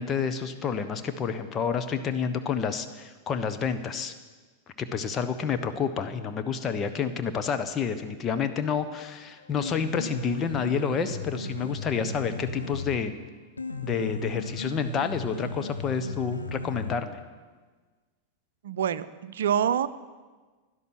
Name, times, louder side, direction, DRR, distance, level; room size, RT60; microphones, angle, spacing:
voice 1, 0.0-4.1 4.8-13.1 13.8-17.2, left 6 dB, 25° left, 8 dB, 1.0 m, -29 dB
Piano, 9.4-17.4, left 3 dB, 80° left, 0.9 m, -36 dB
voice 2, 18.6-19.9, right 9 dB, 60° right, 15 dB, 0.6 m, -26 dB
16.5 x 11.5 x 6.2 m, 1.3 s
figure-of-eight pair, 90°, 0 cm